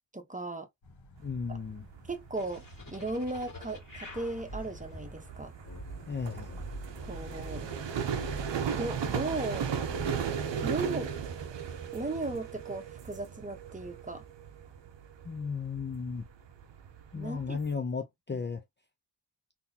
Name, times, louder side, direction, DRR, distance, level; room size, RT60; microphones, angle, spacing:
voice 1, 0.1-0.7 1.5-1.6 2.1-5.5 7.0-7.7 8.7-9.7 10.6-11.1 11.9-14.2 17.2-17.6 18.3-18.4, right 2 dB, 15° right, 0.9 m, -36 dB
sound 1, 0.8-11.2, left 1 dB, 75° left, 1.4 m, -55 dB
voice 2, 1.2-1.9 6.1-6.6 15.2-16.3 17.1-18.6, left 5 dB, 25° left, 0.4 m, -35 dB
sound 2, 1.2-17.7, right 7 dB, 65° right, 0.8 m, -37 dB
sound 3, 2.3-10.2, equal, 45° left, 2.0 m, -45 dB
3.7 x 2.8 x 2.7 m
wide cardioid pair, 90°, 46 cm